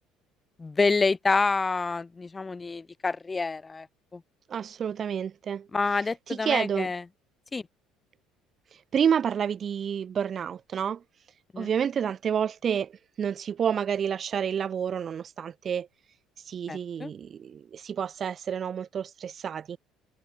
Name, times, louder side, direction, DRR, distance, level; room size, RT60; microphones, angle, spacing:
voice 1, 0.6-3.9 4.1-4.2 5.7-7.0 7.5-7.6 11.5-11.7 16.7-17.1, left 4 dB, 25° left, 6.7 m, -27 dB
voice 2, 4.5-5.7 6.3-6.9 8.9-11.0 11.6-15.9 16.5-19.8, right 8 dB, 45° right, 5.3 m, -29 dB
hypercardioid pair, 70°, 0 cm